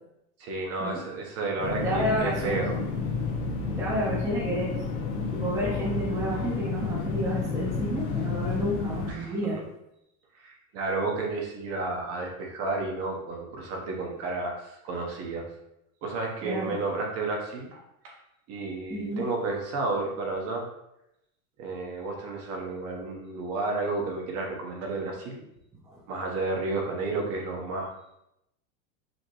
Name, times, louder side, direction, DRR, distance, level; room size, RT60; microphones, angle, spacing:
voice 1, 0.4-2.7 9.1-9.4 10.3-15.4 16.0-18.2 18.5-20.7 21.6-25.4 26.1-27.9, right 3 dB, 35° right, 1 dB, 0.8 m, -32 dB
sound 1, 1.6-9.1, left 4 dB, 80° left, 1.1 m, -31 dB
voice 2, 1.8-2.8 3.8-4.7 5.3-9.6 16.4-16.8 18.9-19.2 25.8-26.0, equal, 5° right, -5 dB, 0.7 m, -30 dB
5.2 x 2.8 x 2.9 m, 0.83 s
supercardioid pair, 150°, 41 cm